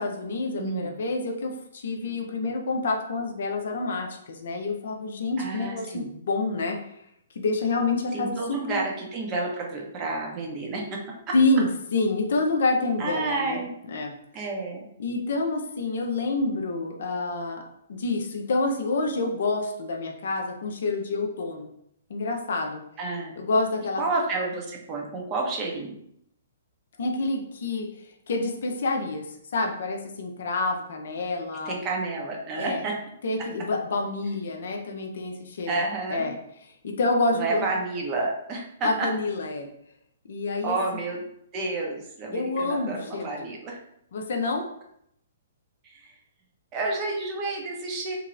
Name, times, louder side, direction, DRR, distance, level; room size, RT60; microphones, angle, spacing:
voice 1, 0.0-6.8 7.4-8.8 11.3-13.6 13.9-14.1 15.0-17.6 17.9-21.7 22.1-22.8 23.4-24.0 27.0-27.9 28.3-29.2 29.5-31.8 32.6-32.8 33.2-35.7 36.1-36.4 36.8-37.6 38.8-39.7 40.3-40.8 42.3-43.4 44.1-44.7, left 3 dB, 55° left, 3 dB, 0.5 m, -27 dB
voice 2, 0.6-1.0 5.4-6.1 8.1-11.0 11.3-11.4 13.0-13.7 14.3-14.9 23.0-23.4 24.0-26.0 31.6-32.9 35.7-36.3 37.3-39.1 40.6-41.3 41.5-43.8 45.8-46.1 46.7-48.2, right 3 dB, 25° right, 0 dB, 0.7 m, -30 dB
2.9 x 2.8 x 2.5 m, 0.73 s
figure-of-eight pair, 120°, 0 cm